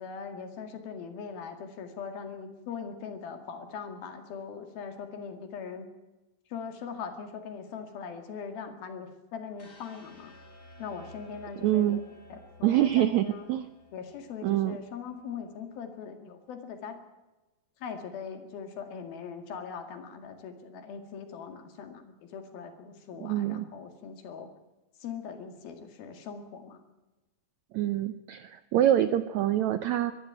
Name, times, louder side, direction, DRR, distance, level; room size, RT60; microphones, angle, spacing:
voice 1, 0.0-5.9 6.5-10.3 10.8-12.0 12.3-13.5 13.9-17.0 17.8-24.5 25.0-26.8, left 6 dB, 80° left, 6 dB, 4.0 m, -41 dB
sound 1, 9.6-15.7, left 1 dB, 20° left, 5.1 m, -54 dB
voice 2, 11.6-12.0 12.6-13.7 14.4-14.8 23.2-23.6 27.7-30.1, right 12 dB, 80° right, 11 dB, 1.6 m, -25 dB
23.0 x 13.5 x 9.0 m, 1.1 s
omnidirectional pair, 4.2 m